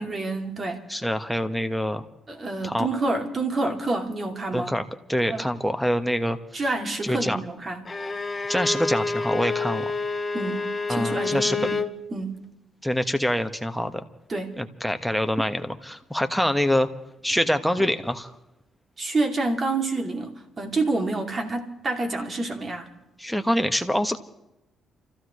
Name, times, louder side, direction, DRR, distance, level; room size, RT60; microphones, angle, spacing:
voice 1, 0.0-0.8 2.3-4.8 5.2-5.4 6.5-7.8 10.3-11.8 12.1-12.4 14.3-14.5 19.0-22.9, right 2 dB, 35° right, 4 dB, 2.6 m, -28 dB
voice 2, 0.9-2.0 2.6-2.9 4.5-4.8 5.1-6.4 7.0-7.4 8.5-9.9 10.9-11.6 12.8-14.0 14.6-16.9 17.2-18.3 23.2-24.2, equal, ahead, 7 dB, 1.3 m, -25 dB
Bowed string instrument, 7.9-12.0, left 4 dB, 20° left, 1.1 m, -28 dB
29.5 x 15.0 x 3.2 m, 0.91 s
cardioid pair, 90°, 0 cm